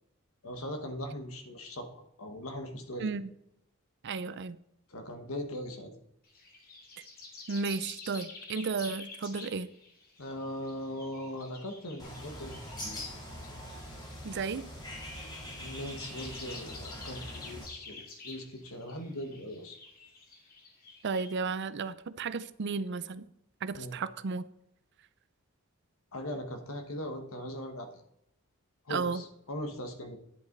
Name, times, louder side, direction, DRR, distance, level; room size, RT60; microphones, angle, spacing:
voice 1, 0.4-3.1 4.9-5.9 10.2-13.0 15.6-19.8 23.7-24.0 26.1-27.9 28.8-30.2, left 1 dB, 75° left, 1.6 m, -40 dB
voice 2, 3.0-3.3 4.0-4.6 7.5-9.7 14.2-14.6 21.0-23.3 23.6-24.4 28.9-29.2, right 4 dB, 55° right, 0.5 m, -33 dB
sound 1, 6.2-21.4, left 3 dB, 45° left, 2.4 m, -50 dB
Bird, 12.0-17.6, left 1 dB, 20° left, 3.0 m, -43 dB
10.5 x 8.3 x 4.0 m
head